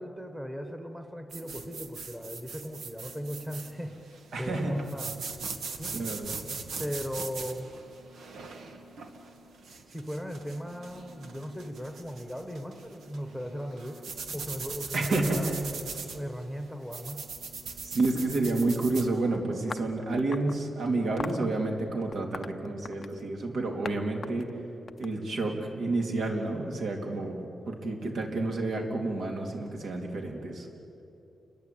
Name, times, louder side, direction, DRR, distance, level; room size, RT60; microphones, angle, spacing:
voice 1, 0.0-5.2 5.8-6.0 6.8-7.7 9.9-14.0 14.3-15.6 16.1-17.2, equal, 5° right, 5 dB, 1.5 m, -38 dB
sound 1, 1.3-19.1, right 4 dB, 90° right, 2.1 m, -41 dB
voice 2, 4.3-4.8 5.9-6.4 14.9-15.6 17.8-24.5 25.0-30.7, right 2 dB, 65° right, 1 dB, 3.4 m, -30 dB
sound 2, 19.7-20.6 21.2-21.5 22.1-23.2 23.8-24.0 24.2-25.6, left 4 dB, 35° left, 0.6 m, -40 dB
29.5 x 21.0 x 8.7 m, 2.8 s
wide cardioid pair, 165°, 0 cm